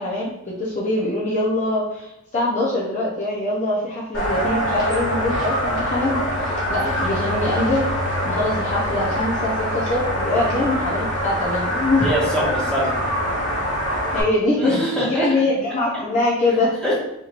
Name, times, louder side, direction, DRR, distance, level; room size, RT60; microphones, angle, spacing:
voice 1, 0.0-7.8 8.2-12.0 14.1-14.8 15.1-16.7, left 2 dB, 35° left, -6 dB, 0.6 m, -23 dB
sound 1, 4.1-14.2, equal, 85° left, 1.4 m, -24 dB
voice 2, 12.0-13.1 14.6-15.4 16.8-17.0, equal, 5° left, -7 dB, 1.2 m, -24 dB
4.4 x 3.0 x 2.5 m, 0.85 s
head